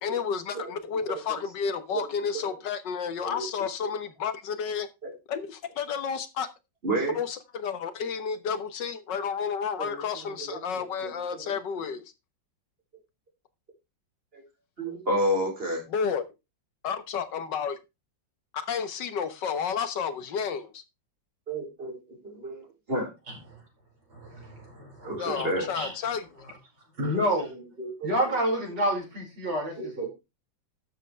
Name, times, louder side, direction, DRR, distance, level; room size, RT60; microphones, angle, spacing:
voice 1, 0.0-4.9 5.3-6.5 7.1-12.0 15.9-16.2 16.8-17.8 18.5-20.8 25.2-26.5, left 6 dB, 70° left, 1.8 m, -31 dB
voice 2, 1.1-1.4 1.9-2.1 2.3-2.5 3.2-3.5 3.8-3.9 5.0-5.1 6.8-7.2 9.8-11.5 14.3-14.4 14.8-15.8 21.5-21.9 22.2-23.1 25.0-25.7 27.0-27.1 27.8-28.1 29.8-30.1, right 1 dB, 30° right, 4.6 m, -31 dB
voice 3, 24.1-26.0 26.2-26.6 27.0-27.6 28.0-30.1, equal, 65° right, 5.8 m, -30 dB
12.0 x 7.7 x 3.3 m
omnidirectional pair, 2.0 m